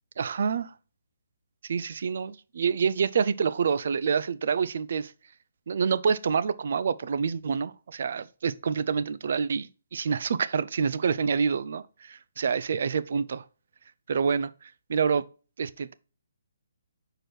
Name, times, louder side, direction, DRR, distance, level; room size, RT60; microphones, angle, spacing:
voice 1, 0.2-0.7 1.6-5.1 5.7-13.4 14.1-15.2 15.6-15.9, right 6 dB, 55° right, 0.4 m, -27 dB
4.9 x 4.6 x 4.3 m
hypercardioid pair, 165°, 0 cm